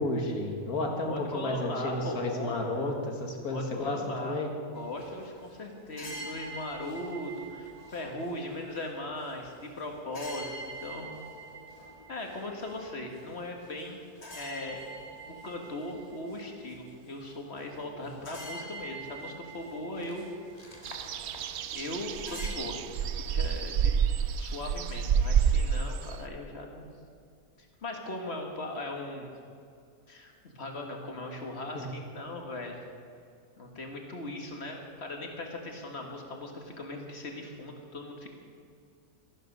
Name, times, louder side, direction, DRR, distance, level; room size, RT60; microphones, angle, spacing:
voice 1, 0.0-2.9 3.2-4.5 31.7-31.9, left 1 dB, 65° left, 2 dB, 2.1 m, -32 dB
voice 2, 1.1-2.9 3.5-4.4 4.7-11.1 12.1-14.0 14.3-14.8 15.3-20.3 20.5-20.9 21.7-24.0 24.4-26.9 27.6-29.3 30.1-32.8 33.6-38.3, left 1 dB, 45° left, 2 dB, 1.9 m, -39 dB
sound 1, 4.7-22.5, right 1 dB, 25° left, 1.6 m, -46 dB
sound 2, 20.8-26.2, right 7 dB, 75° right, 0.6 m, -28 dB
13.5 x 12.0 x 5.4 m, 2.3 s
omnidirectional pair, 1.7 m